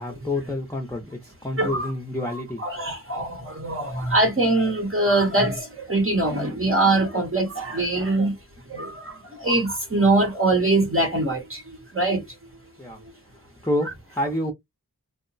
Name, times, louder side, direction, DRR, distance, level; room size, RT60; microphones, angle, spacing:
voice 1, 0.0-2.6 12.8-13.0 13.3-14.5, left 1 dB, 10° left, 0.7 m, -28 dB
voice 2, 1.6-1.9 2.3-8.4 8.7-12.2, right 2 dB, 35° right, 0.8 m, -23 dB
2.8 x 2.1 x 2.6 m
wide cardioid pair, 55°, 37 cm